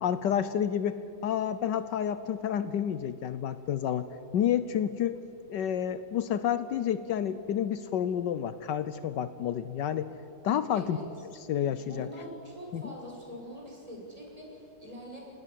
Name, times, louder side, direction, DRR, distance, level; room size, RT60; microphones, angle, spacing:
voice 1, 0.0-4.1 4.3-5.2 5.5-10.1 10.4-11.0 11.5-12.1 12.7-12.8, left 9 dB, 75° left, 13 dB, 1.4 m, -29 dB
voice 2, 10.7-11.0 11.7-15.2, equal, 20° right, -2 dB, 6.1 m, -44 dB
27.0 x 19.5 x 7.6 m, 2.7 s
omnidirectional pair, 2.0 m